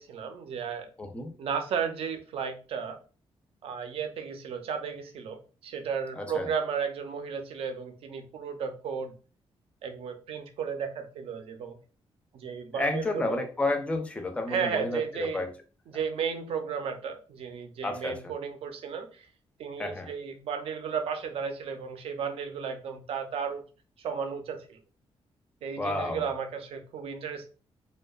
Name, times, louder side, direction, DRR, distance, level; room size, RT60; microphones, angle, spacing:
voice 1, 0.0-0.9 1.4-3.0 3.6-9.1 9.8-11.8 12.3-13.4 14.5-15.4 15.9-19.3 19.6-23.6 24.0-24.8 25.6-27.5, right 6 dB, 70° right, 6 dB, 0.5 m, -34 dB
voice 2, 1.0-1.3 6.1-6.5 12.7-15.5 17.8-18.3 19.8-20.1 25.8-26.3, left 2 dB, 10° left, 5 dB, 0.3 m, -31 dB
2.6 x 2.1 x 2.3 m, 0.36 s
wide cardioid pair, 170°, 10 cm